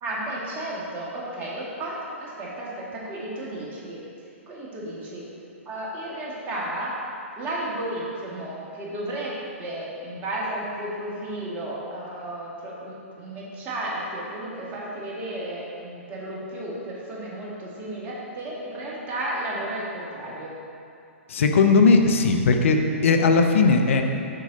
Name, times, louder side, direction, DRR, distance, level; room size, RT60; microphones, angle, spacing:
voice 1, 0.0-4.0 4.5-5.2 5.7-7.0 7.4-20.5, right 1 dB, 25° right, -5 dB, 1.8 m, -33 dB
voice 2, 21.3-24.0, left 4 dB, 65° left, 5 dB, 0.7 m, -18 dB
6.7 x 6.2 x 3.9 m, 2.6 s
hypercardioid pair, 120°, 7 cm